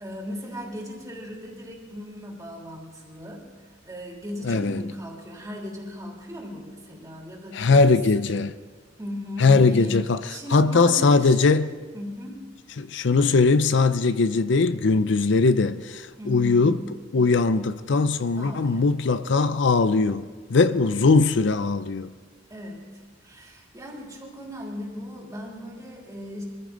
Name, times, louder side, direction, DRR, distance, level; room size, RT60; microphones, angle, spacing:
voice 1, 0.0-8.2 9.0-10.0 10.3-11.6 11.9-12.5 16.2-16.7 18.3-18.9 22.5-26.4, equal, 20° right, 3.3 m, -37 dB
voice 2, 4.4-4.8 7.6-8.5 9.4-11.7 12.8-16.7 17.1-20.2 20.5-22.1, left 4 dB, 70° left, 0.5 m, -20 dB
23.5 x 15.0 x 3.9 m
head